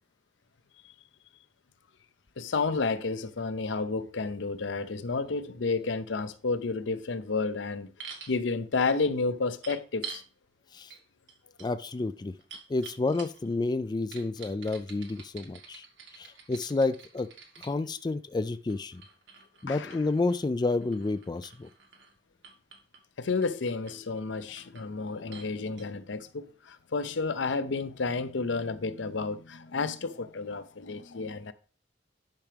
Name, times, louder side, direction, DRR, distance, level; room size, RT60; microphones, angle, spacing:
voice 1, 2.4-10.2 19.7-20.0 23.2-31.5, left 4 dB, 80° left, 0.6 m, -31 dB
sound 1, 8.0-8.4 9.6-10.3 10.9-11.0 11.3-13.5 14.1-17.7 18.7-22.1 22.4-23.0 23.4-24.0 24.3-24.9 25.3-25.5 25.8-25.9, right 7 dB, 75° right, 1.9 m, -47 dB
voice 2, 11.6-12.3 12.7-15.9 16.1-17.3 17.6-19.0 19.6-21.7, left 3 dB, 25° left, 0.3 m, -30 dB
10.5 x 5.8 x 3.4 m
head